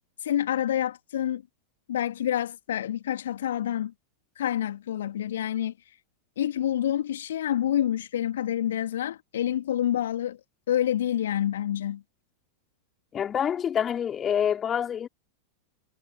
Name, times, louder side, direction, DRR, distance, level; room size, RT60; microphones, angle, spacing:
voice 1, 0.2-1.4 1.9-3.9 4.4-6.0 6.4-10.4 10.7-12.0, left 11 dB, 60° left, 2.0 m, -28 dB
voice 2, 13.1-15.1, left 8 dB, 25° left, 4.1 m, -26 dB
figure-of-eight pair, 90°, 0 cm